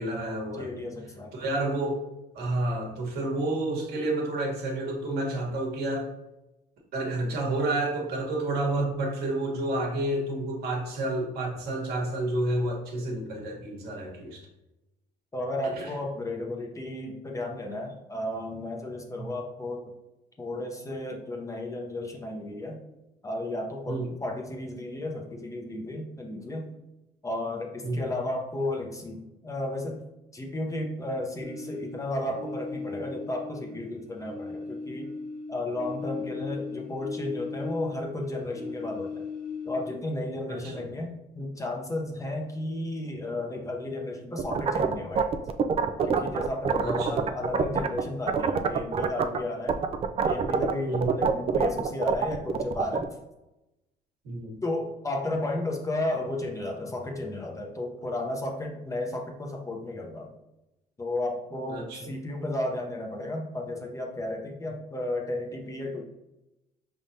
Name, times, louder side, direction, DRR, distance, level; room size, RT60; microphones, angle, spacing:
voice 1, 0.0-0.7 1.3-2.0 2.3-6.1 6.9-14.4 15.7-15.9 19.2-19.3 23.9-24.2 27.8-28.1 40.5-40.9 46.8-47.3 50.9-51.1 54.2-54.6 61.7-62.1, right 2 dB, 70° right, -1 dB, 1.3 m, -30 dB
voice 2, 0.5-1.3 15.3-19.9 20.4-22.8 23.2-26.7 27.2-30.0 30.3-35.1 35.5-39.3 39.6-45.4 46.0-49.8 50.2-53.1 54.6-60.3 61.0-66.0, left 1 dB, 20° left, 1 dB, 0.7 m, -33 dB
sound 1, 31.4-33.9 34.2-38.1 38.5-40.1, left 4 dB, 60° left, 1.0 m, -38 dB
sound 2, 44.4-48.0 48.3-49.4 49.7-53.0, right 6 dB, 35° right, 0.4 m, -25 dB
4.8 x 3.5 x 2.7 m, 0.95 s
cardioid pair, 110°, 17 cm